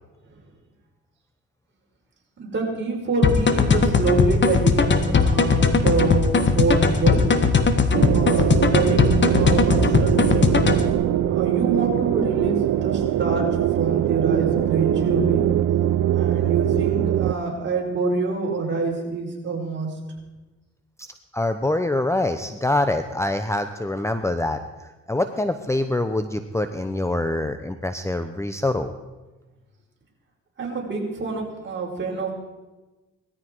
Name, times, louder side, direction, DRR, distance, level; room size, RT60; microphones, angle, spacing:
voice 1, 2.4-7.4 8.1-10.5 11.3-15.5 16.1-19.9 30.6-32.3, right 3 dB, 40° right, -1 dB, 5.3 m, -26 dB
sound 1, 3.2-10.9, left 4 dB, 40° left, 1.6 m, -19 dB
sound 2, 7.9-17.3, right 12 dB, 70° right, 0.6 m, -22 dB
voice 2, 21.3-28.9, left 2 dB, 10° left, 8 dB, 0.9 m, -25 dB
19.5 x 14.0 x 4.7 m, 1.2 s
cardioid pair, 90°, 30 cm